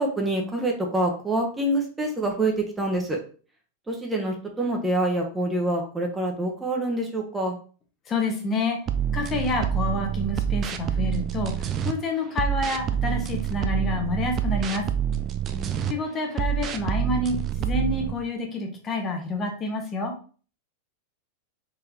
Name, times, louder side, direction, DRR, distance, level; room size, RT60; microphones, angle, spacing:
voice 1, 0.0-3.2 3.9-7.6 15.5-15.9, right 1 dB, 10° right, 1 dB, 0.9 m, -26 dB
voice 2, 8.1-8.8 9.1-14.8 15.9-20.1, left 2 dB, 25° left, 2 dB, 0.9 m, -28 dB
sound 1, 8.9-11.9 12.4-15.9 16.4-18.1, right 9 dB, 30° right, 0.4 m, -27 dB
3.9 x 3.3 x 2.8 m, 0.39 s
figure-of-eight pair, 90°, 0 cm